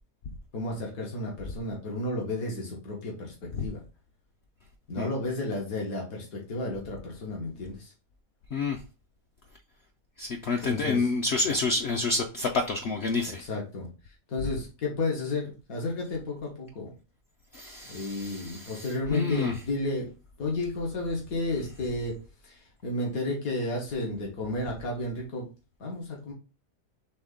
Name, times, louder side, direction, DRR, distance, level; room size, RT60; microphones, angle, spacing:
voice 1, 0.5-3.8 4.9-7.9 10.6-11.1 13.3-13.9 14.3-16.9 17.9-20.1 20.4-22.1 22.4-25.5 25.8-26.3, left 2 dB, 80° left, -1 dB, 1.7 m, -32 dB
voice 2, 10.2-13.4 17.5-19.6, left 3 dB, 60° left, 3 dB, 0.7 m, -28 dB
4.3 x 3.3 x 3.7 m, 0.32 s
omnidirectional pair, 1.5 m